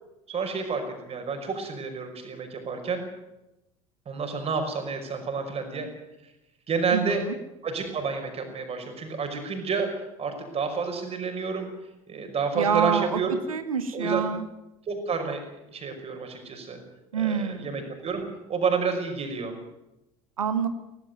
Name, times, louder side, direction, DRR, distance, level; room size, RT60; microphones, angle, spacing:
voice 1, 0.3-3.1 4.1-5.9 6.7-7.2 7.6-9.9 10.2-11.7 12.1-13.3 13.9-14.3 14.9-15.4 15.7-16.8 17.2-18.2 18.5-19.5, right 5 dB, 35° right, 5 dB, 5.6 m, -29 dB
voice 2, 6.9-7.3 12.5-13.2 13.5-14.4 17.1-17.8 20.4-20.7, right 7 dB, 80° right, 11 dB, 1.3 m, -27 dB
17.5 x 17.0 x 9.4 m, 0.92 s
figure-of-eight pair, 65°, 18 cm